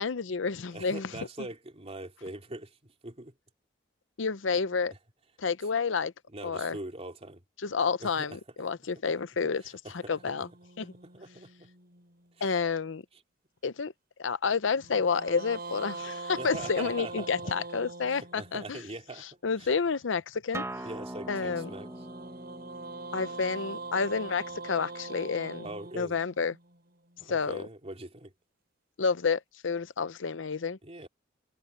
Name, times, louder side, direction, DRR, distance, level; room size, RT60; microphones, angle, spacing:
voice 1, 0.0-1.1 4.2-4.9 5.4-6.1 6.4-6.8 7.6-10.5 10.8-10.9 12.4-13.0 13.6-13.9 14.2-18.8 19.2-20.6 21.3-21.7 23.1-25.7 26.0-26.6 27.3-27.7 29.0-30.8, left 5 dB, 85° left, 0.7 m, -30 dB
voice 2, 0.7-3.3 6.3-7.4 8.0-8.4 9.0-9.1 9.6-10.5 11.1-11.7 12.4-12.6 16.4-17.5 18.0-19.7 20.8-21.9 25.6-26.2 27.2-28.3 30.8-31.1, right 2 dB, 35° right, 3.0 m, -42 dB
sound 1, 10.1-12.5 14.8-18.9 21.1-27.3, right 3 dB, 55° right, 6.6 m, -43 dB
Acoustic guitar, 20.5-25.7, right 1 dB, 15° right, 1.4 m, -43 dB
head